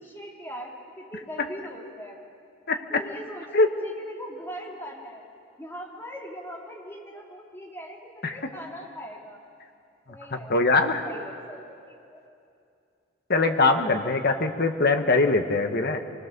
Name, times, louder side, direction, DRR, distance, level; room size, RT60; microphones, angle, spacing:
voice 1, 0.0-2.2 2.9-3.5 3.8-5.2 5.6-9.4 10.1-11.8 12.1-12.2, equal, 10° left, -2 dB, 2.6 m, -40 dB
voice 2, 10.3-11.0 13.3-16.0, left 3 dB, 50° left, 6 dB, 1.3 m, -22 dB
25.0 x 20.5 x 6.8 m, 2.5 s
head